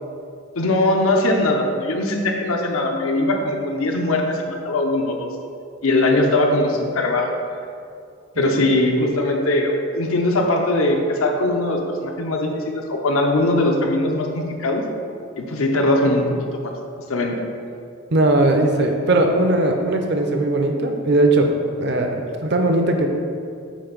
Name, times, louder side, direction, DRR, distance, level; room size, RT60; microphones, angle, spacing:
voice 1, 0.6-5.3 5.8-7.3 8.4-14.8 15.4-16.3 16.6-16.7 17.1-17.4, left 2 dB, 80° left, 2 dB, 0.7 m, -20 dB
voice 2, 18.1-21.5 21.8-22.2 22.4-23.1, right 2 dB, 50° right, 4 dB, 0.5 m, -18 dB
7.2 x 2.6 x 5.1 m, 2.4 s
head